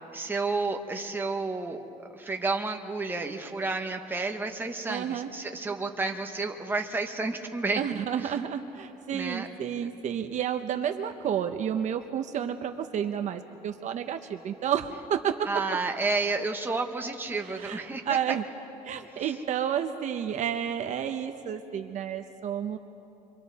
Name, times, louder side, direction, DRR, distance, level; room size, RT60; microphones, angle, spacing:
voice 1, 0.1-7.8 8.2-8.3 9.1-9.5 15.5-18.0, right 3 dB, 15° right, 3 dB, 1.3 m, -31 dB
voice 2, 4.9-5.3 7.8-15.5 17.4-18.4 18.8-22.8, right 9 dB, 55° right, 7 dB, 0.8 m, -31 dB
28.0 x 24.5 x 4.2 m, 2.8 s
cardioid pair, 130°, 15 cm